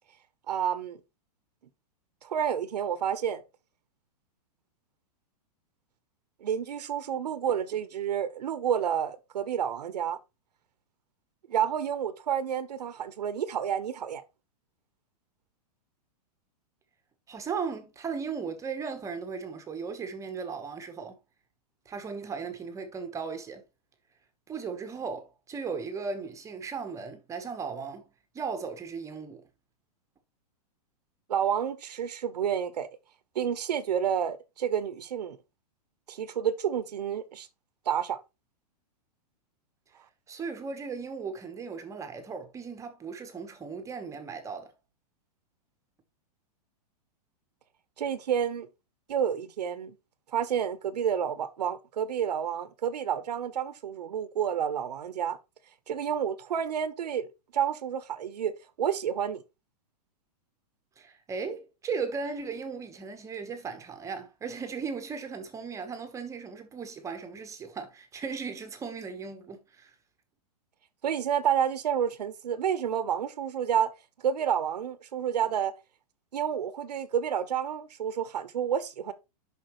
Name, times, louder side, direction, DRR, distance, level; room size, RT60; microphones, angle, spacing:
voice 1, 0.5-1.0 2.2-3.4 6.4-10.2 11.5-14.2 31.3-32.9 33.3-35.4 36.1-37.5 37.9-38.2 48.0-48.7 49.1-50.0 50.3-55.4 55.9-58.5 58.8-59.4 71.0-73.9 74.2-75.7 76.3-79.1, right 8 dB, 90° right, 1.1 m, -29 dB
voice 2, 17.3-21.2 21.8-23.6 24.5-28.1 28.3-29.4 40.3-44.7 61.0-69.9, right 5 dB, 15° right, 1.1 m, -37 dB
9.1 x 5.9 x 3.1 m
hypercardioid pair, 145°, 20 cm